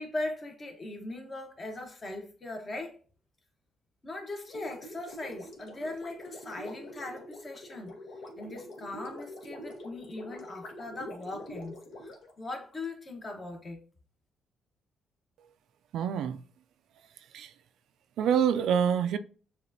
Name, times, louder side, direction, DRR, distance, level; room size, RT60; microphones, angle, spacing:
voice 1, 0.0-3.0 4.0-7.9 8.4-12.1 12.4-13.8, left 2 dB, 35° left, 1.2 m, -39 dB
Gurgling, 4.5-12.9, left 1 dB, 70° left, 1.2 m, -45 dB
voice 2, 15.9-16.4 17.3-17.5 18.2-19.2, right 8 dB, 75° right, 0.3 m, -26 dB
6.6 x 2.5 x 2.7 m
cardioid pair, 90°, 0 cm